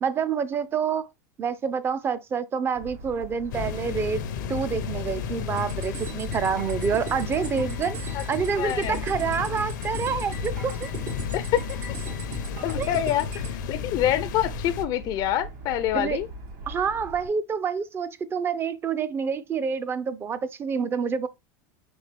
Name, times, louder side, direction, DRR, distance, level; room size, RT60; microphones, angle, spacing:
voice 1, 0.0-1.1 1.4-4.2 4.5-10.9 12.8-12.9 15.9-16.2 16.7-21.3, right 6 dB, 25° right, 0.4 m, -27 dB
Motor vehicle (road) / Siren, 2.8-17.3, equal, 60° right, 2.6 m, -40 dB
sound 1, 3.5-14.8, left 8 dB, 90° left, 0.6 m, -34 dB
sound 2, 5.6-13.6, right 3 dB, 85° right, 2.9 m, -38 dB
voice 2, 8.6-9.0 11.3-11.8 12.6-16.3, left 12 dB, 45° left, 0.4 m, -26 dB
4.4 x 3.4 x 3.2 m
supercardioid pair, 130°, 10 cm